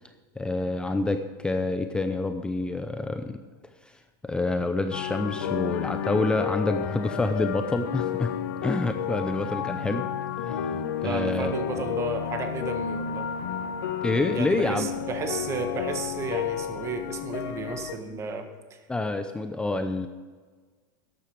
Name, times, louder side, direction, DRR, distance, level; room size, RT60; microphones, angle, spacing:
voice 1, 0.4-3.4 4.2-8.3 8.6-10.1 10.4-11.8 14.0-14.9 18.9-20.1, left 2 dB, 10° left, 8 dB, 0.6 m, -27 dB
sound 1, 4.9-18.0, left 8 dB, 85° left, 1.0 m, -31 dB
voice 2, 11.0-13.3 14.3-18.4 18.7-18.8, right 4 dB, 25° right, 6 dB, 1.6 m, -33 dB
13.0 x 10.0 x 5.1 m, 1.4 s
supercardioid pair, 140°, 11 cm